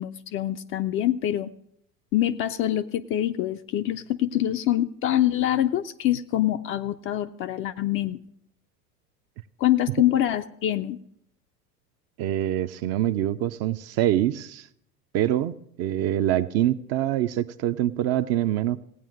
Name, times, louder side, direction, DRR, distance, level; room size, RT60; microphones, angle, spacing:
voice 1, 0.0-1.5 2.1-8.2 9.6-11.0, left 12 dB, 30° left, 9 dB, 0.4 m, -25 dB
voice 2, 12.2-14.7 15.1-18.8, right 12 dB, 35° right, 11 dB, 0.5 m, -25 dB
16.5 x 9.0 x 6.4 m, 0.71 s
hypercardioid pair, 85°, 48 cm